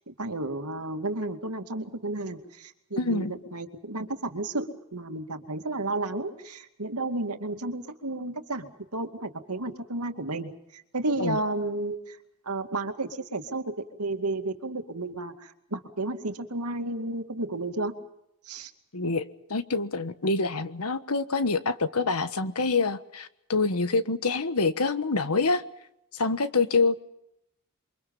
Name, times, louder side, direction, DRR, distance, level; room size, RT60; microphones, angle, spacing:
voice 1, 0.1-3.3 3.5-12.2 12.5-17.9 18.5-18.7, right 2 dB, 90° right, 2.4 m, -32 dB
voice 2, 3.0-3.3 11.2-11.4 18.9-19.2 19.5-25.6 26.1-27.0, left 3 dB, 80° left, 1.4 m, -26 dB
28.5 x 23.5 x 5.6 m
head